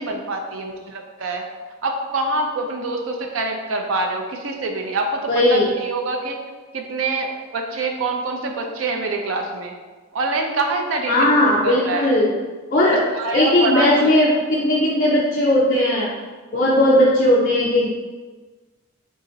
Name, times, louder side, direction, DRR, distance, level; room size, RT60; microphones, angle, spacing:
voice 1, 0.0-1.5 1.8-6.4 6.7-9.7 10.1-12.1 12.9-14.1, right 3 dB, 75° right, 3 dB, 0.5 m, -25 dB
voice 2, 5.3-5.7 11.1-12.3 12.7-13.0 13.3-16.1 16.5-17.9, left 1 dB, 40° left, -6 dB, 0.5 m, -17 dB
3.9 x 2.5 x 3.8 m, 1.3 s
head